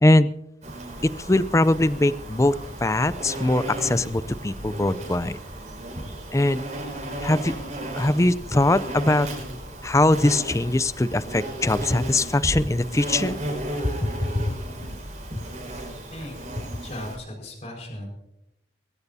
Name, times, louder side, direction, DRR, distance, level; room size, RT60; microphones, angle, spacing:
voice 1, 0.0-0.3 1.3-2.5 2.8-5.4 6.3-6.6 7.2-7.5 7.9-9.3 9.8-13.4 13.8-14.5 15.4-15.5, left 2 dB, 15° left, 15 dB, 0.4 m, -21 dB
Insect, 0.6-17.2, right 1 dB, 40° right, 5.2 m, -34 dB
voice 2, 16.1-16.4 16.8-18.1, left 1 dB, 40° left, 1 dB, 4.9 m, -37 dB
22.5 x 16.5 x 2.7 m, 0.84 s
head